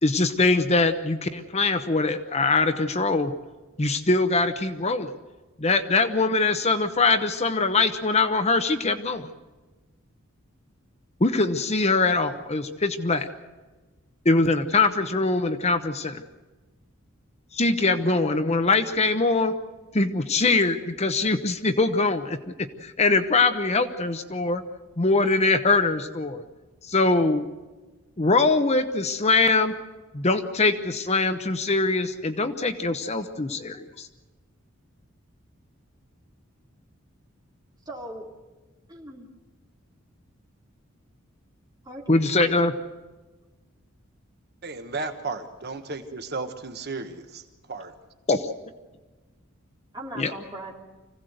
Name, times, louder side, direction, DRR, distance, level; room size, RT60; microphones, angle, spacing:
voice 1, 0.0-3.3 3.8-5.1 5.6-9.3 11.2-13.3 14.2-16.2 17.5-19.5 19.9-22.4 22.8-24.6 25.0-26.4 26.8-27.5 28.2-29.7 30.1-34.1 42.1-42.7 48.3-48.5 50.2-50.3, left 3 dB, 30° left, 9 dB, 0.9 m, -22 dB
voice 2, 37.8-38.3 38.9-39.3 41.8-42.2 49.9-50.7, right 1 dB, 20° right, -1 dB, 3.1 m, -38 dB
voice 3, 44.6-47.4 47.7-47.9, right 3 dB, 50° right, 7 dB, 1.2 m, -34 dB
25.0 x 16.5 x 8.0 m, 1.2 s
head